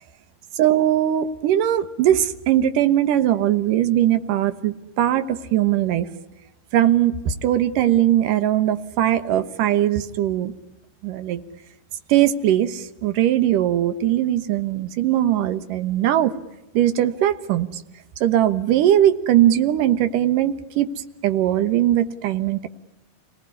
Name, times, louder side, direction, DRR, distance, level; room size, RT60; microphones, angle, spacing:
voice 1, 0.6-6.1 6.7-10.5 11.0-11.4 12.1-16.3 16.7-17.7 18.2-20.9 21.2-22.7, right 12 dB, 65° right, 10 dB, 2.5 m, -20 dB
28.5 x 18.5 x 9.8 m, 0.99 s
omnidirectional pair, 4.6 m